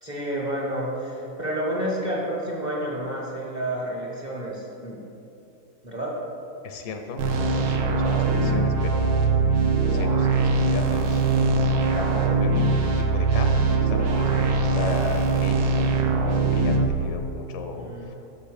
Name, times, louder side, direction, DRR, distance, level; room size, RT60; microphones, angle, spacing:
voice 1, 0.0-5.0 5.8-6.1 17.7-18.2, right 1 dB, 30° right, -4 dB, 1.2 m, -30 dB
voice 2, 6.6-9.3 9.7-11.2 12.0-18.2, left 4 dB, 80° left, 5 dB, 1.2 m, -36 dB
sound 1, 7.2-16.9, right 3 dB, 75° right, 1.2 m, -22 dB
6.5 x 5.3 x 5.0 m, 2.8 s
omnidirectional pair, 1.7 m